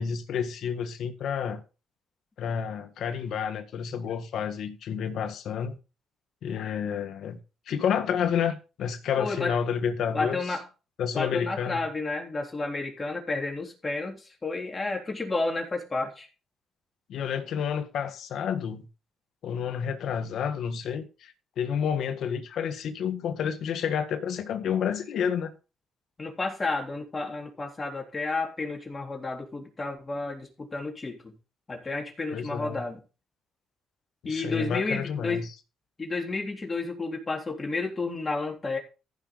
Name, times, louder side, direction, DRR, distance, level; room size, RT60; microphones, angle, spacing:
voice 1, 0.0-1.6 2.4-5.8 6.4-7.4 7.7-10.4 11.0-11.8 17.1-18.9 19.4-25.6 32.3-32.8 34.2-35.5, left 7 dB, 70° left, 1.5 m, -30 dB
voice 2, 9.2-9.6 10.1-10.7 11.1-16.3 26.2-31.3 31.7-33.0 34.2-35.5 36.0-38.8, left 3 dB, 25° left, 3.7 m, -31 dB
15.0 x 6.4 x 3.9 m
cardioid pair, 90°, 0 cm